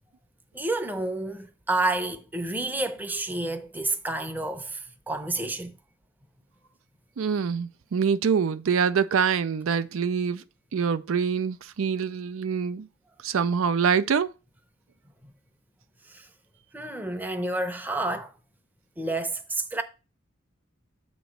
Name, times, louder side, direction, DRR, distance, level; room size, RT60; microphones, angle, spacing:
voice 1, 0.5-5.7 15.2-15.3 16.1-16.3 16.7-18.3 19.0-19.8, right 2 dB, 10° right, 0.6 m, -30 dB
voice 2, 7.2-10.4 10.7-12.9 13.2-14.3, right 6 dB, 90° right, 0.4 m, -25 dB
7.9 x 3.1 x 6.2 m
head